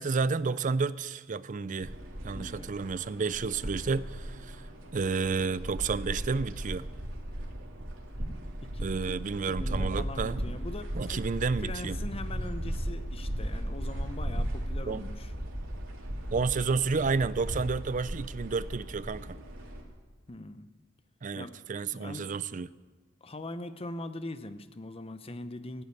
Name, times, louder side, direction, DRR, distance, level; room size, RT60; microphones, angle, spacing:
voice 1, 0.0-1.9 2.2-4.6 4.9-6.9 8.8-10.4 10.9-12.0 14.8-15.1 16.3-19.4 21.2-22.7, right 4 dB, 40° right, 17 dB, 0.5 m, -31 dB
sound 1, 1.8-19.8, right 1 dB, 90° right, 2.9 m, -36 dB
voice 2, 2.3-2.7 8.6-9.2 9.4-11.2 11.6-15.3 20.3-20.7 21.3-21.6 21.9-22.3 23.2-25.8, left 2 dB, 30° left, 11 dB, 0.8 m, -41 dB
16.0 x 8.4 x 9.7 m, 1.4 s
head